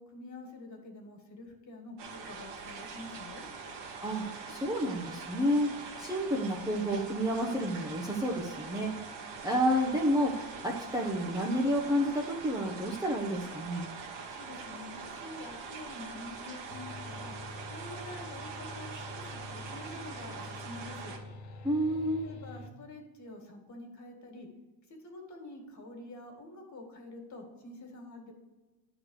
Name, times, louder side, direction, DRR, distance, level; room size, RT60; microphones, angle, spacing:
voice 1, 0.0-3.4 14.3-21.2 22.2-24.5 24.9-28.3, left 2 dB, 40° left, 3 dB, 2.2 m, -47 dB
sound 1, 2.0-21.2, right 5 dB, 65° right, 1.6 m, -43 dB
voice 2, 4.0-9.0 9.4-13.9 21.6-22.3, equal, 10° right, -2 dB, 1.0 m, -30 dB
sound 2, 16.7-22.7, left 2 dB, 85° left, 1.1 m, -46 dB
9.7 x 4.1 x 6.5 m, 1.2 s
supercardioid pair, 105°, 45 cm